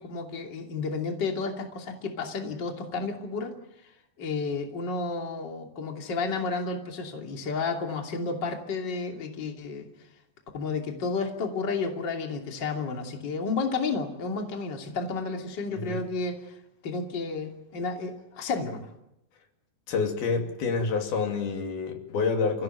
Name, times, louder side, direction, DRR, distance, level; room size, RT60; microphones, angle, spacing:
voice 1, 0.0-3.5 4.2-9.9 10.5-16.5 16.8-18.9, left 4 dB, 30° left, 2 dB, 3.0 m, -31 dB
voice 2, 19.9-22.6, left 4 dB, 80° left, 3 dB, 4.7 m, -28 dB
29.5 x 16.0 x 9.2 m, 0.85 s
omnidirectional pair, 4.3 m